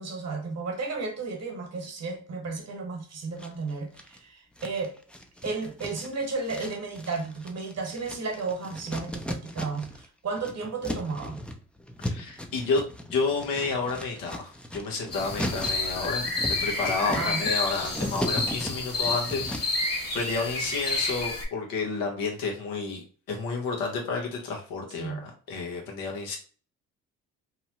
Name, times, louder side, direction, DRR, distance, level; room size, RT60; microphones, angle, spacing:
voice 1, 0.0-5.0 5.4-11.4 17.1-17.4 25.0-25.3, right 4 dB, 50° right, 1.1 m, -33 dB
sound 1, 3.4-4.2 4.6-10.1 10.3-19.9, left 1 dB, 5° left, 0.4 m, -37 dB
voice 2, 12.0-19.8 20.1-26.4, left 4 dB, 85° left, 0.9 m, -31 dB
sound 2, 15.1-21.4, left 3 dB, 45° left, 1.3 m, -30 dB
2.9 x 2.1 x 2.8 m
supercardioid pair, 60°, 33 cm